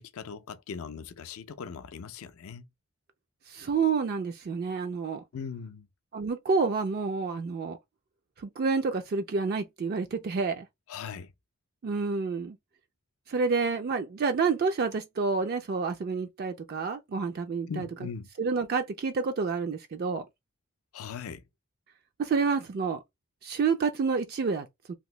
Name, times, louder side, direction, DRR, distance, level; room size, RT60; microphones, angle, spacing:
voice 1, 0.0-2.7 5.3-5.9 10.9-11.3 17.7-18.3 20.9-21.4, left 6 dB, 70° left, 0.4 m, -39 dB
voice 2, 3.5-5.2 6.1-7.8 8.4-10.6 11.8-12.6 13.3-17.9 18.4-20.2 22.2-23.0 23.4-24.9, right 4 dB, 45° right, 0.3 m, -29 dB
2.9 x 2.6 x 3.1 m
head